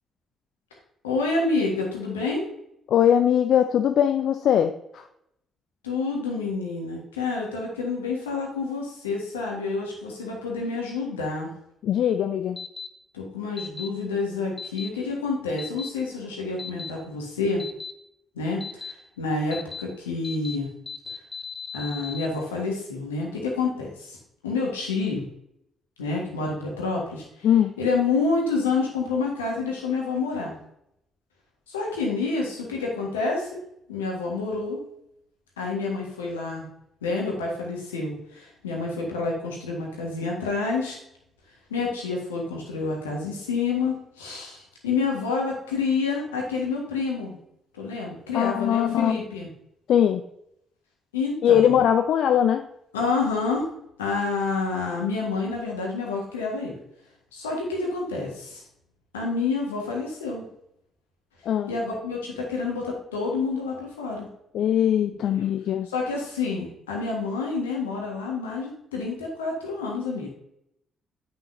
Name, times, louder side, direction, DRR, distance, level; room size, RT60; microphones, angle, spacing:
voice 1, 1.0-2.4 5.8-11.5 13.1-17.7 18.3-20.7 21.7-24.2 24.4-25.3 26.0-27.5 27.8-30.5 31.7-33.6 33.9-34.8 35.6-36.6 37.0-41.0 41.7-47.4 47.7-49.5 51.1-51.8 52.9-53.7 54.0-56.8 57.3-58.6 59.1-60.4 61.7-64.3 65.9-70.3, left 4 dB, 80° left, -1 dB, 1.6 m, -28 dB
voice 2, 2.9-5.0 11.8-12.6 27.4-27.7 48.3-49.2 49.9-50.2 51.4-52.6 61.4-61.7 64.5-65.9, left 9 dB, 60° left, 8 dB, 0.4 m, -21 dB
sound 1, 12.6-12.9 13.6-13.9 14.6-14.9 15.6-15.9 16.6-16.9 17.6-17.9 18.6-18.9 19.5-19.8 20.2-20.6 20.9-22.3, left 5 dB, 35° left, 0.9 m, -36 dB
8.7 x 5.9 x 2.7 m, 0.77 s
figure-of-eight pair, 45°, 0 cm